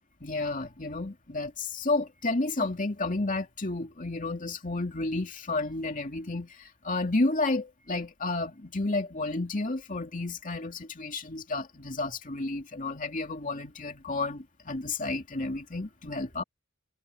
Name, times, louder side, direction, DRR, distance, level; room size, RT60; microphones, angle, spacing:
voice 1, 0.2-16.4, left 2 dB, 40° left, 2.6 m, -31 dB
head